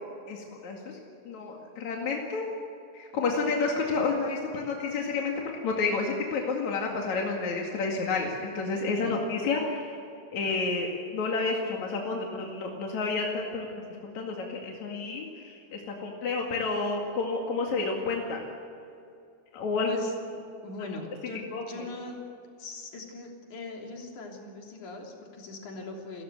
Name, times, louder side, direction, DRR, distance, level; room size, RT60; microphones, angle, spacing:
voice 1, 0.3-0.8 1.3-2.5 2.9-10.0 10.3-13.8 14.2-18.4 19.5-19.9 21.5-21.6, left 4 dB, 70° left, 0 dB, 3.6 m, -30 dB
voice 2, 20.6-22.2 22.6-26.2, left 3 dB, 90° left, 0 dB, 4.7 m, -40 dB
29.5 x 15.5 x 8.2 m, 2.6 s
omnidirectional pair, 3.4 m